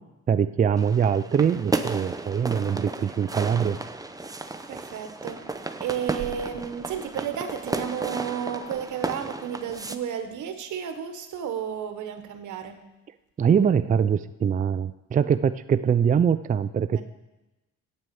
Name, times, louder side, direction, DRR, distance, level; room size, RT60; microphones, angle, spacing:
voice 1, 0.3-3.8 13.4-17.0, right 7 dB, 25° right, 12 dB, 0.4 m, -23 dB
sound 1, 0.8-10.0, right 2 dB, 10° right, 0.8 m, -34 dB
voice 2, 4.7-5.4 5.8-12.8 16.9-17.0, right 8 dB, 75° right, 8 dB, 1.4 m, -32 dB
9.7 x 9.1 x 7.0 m, 1.0 s
cardioid pair, 90°, 30 cm